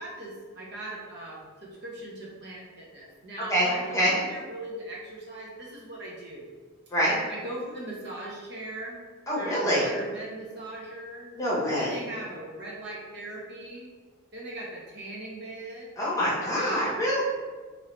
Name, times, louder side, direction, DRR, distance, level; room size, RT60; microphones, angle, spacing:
voice 1, 0.0-6.5 7.3-9.0 9.4-11.3 11.8-13.9 14.3-15.9 16.5-17.0, right 1 dB, 50° right, -4 dB, 0.8 m, -40 dB
voice 2, 3.5-4.2 6.9-7.2 9.3-9.8 11.3-12.0 16.0-17.2, equal, 15° left, -7 dB, 1.0 m, -25 dB
4.6 x 2.7 x 3.2 m, 1.4 s
head